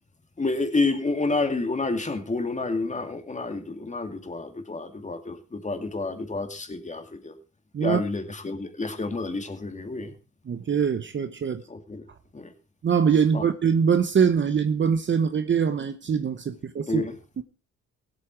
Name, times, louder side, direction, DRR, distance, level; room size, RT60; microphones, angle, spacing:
voice 1, 0.4-7.3 7.8-10.2 11.7-12.1 12.3-12.5 13.3-13.5 16.9-17.2, left 3 dB, 25° left, 2.4 m, -29 dB
voice 2, 10.5-11.6 12.8-17.0 17.4-17.5, right 7 dB, 40° right, 0.9 m, -23 dB
16.5 x 8.2 x 4.6 m
cardioid pair, 90°, 30 cm